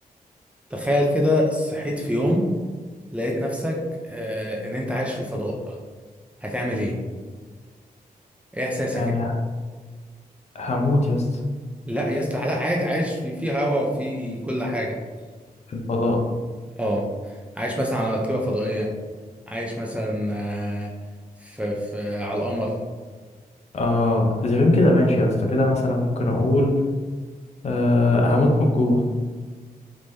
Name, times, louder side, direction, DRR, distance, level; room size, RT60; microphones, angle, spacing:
voice 1, 0.7-2.5 3.1-3.8 4.0-5.8 6.4-6.9 8.5-9.1 11.9-15.0 16.8-18.9 19.5-20.9 21.4-22.7, equal, 10° right, -2 dB, 0.4 m, -25 dB
voice 2, 8.9-9.3 10.5-11.3 15.7-16.3 23.7-26.8 27.6-29.0, left 2 dB, 45° left, 1 dB, 0.5 m, -20 dB
3.5 x 3.1 x 2.6 m, 1.4 s
wide cardioid pair, 175°, 15 cm